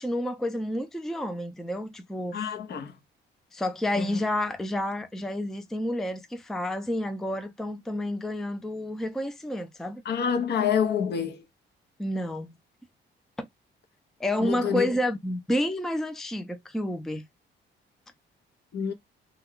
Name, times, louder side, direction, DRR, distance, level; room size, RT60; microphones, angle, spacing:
voice 1, 0.0-2.4 3.5-10.0 12.0-12.6 13.4-13.5 14.2-17.2, left 1 dB, ahead, 0.4 m, -30 dB
voice 2, 2.3-2.9 4.0-4.2 10.0-11.4 14.4-14.9 18.7-18.9, left 7 dB, 55° left, 0.7 m, -27 dB
2.3 x 2.2 x 3.5 m
cardioid pair, 90°, 20 cm